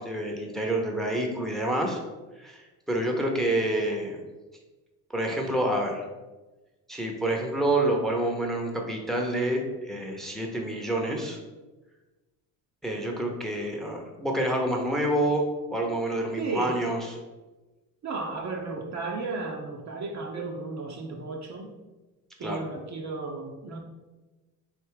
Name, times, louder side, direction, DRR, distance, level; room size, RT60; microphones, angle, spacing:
voice 1, 0.0-2.0 2.4-4.2 5.1-6.0 6.9-11.4 12.8-17.1 22.4-22.6, right 1 dB, ahead, 1 dB, 0.8 m, -28 dB
voice 2, 16.3-16.8 18.0-21.7 22.4-23.8, right 3 dB, 35° right, 1 dB, 0.7 m, -34 dB
3.4 x 2.8 x 4.7 m, 1.2 s
hypercardioid pair, 65°, 47 cm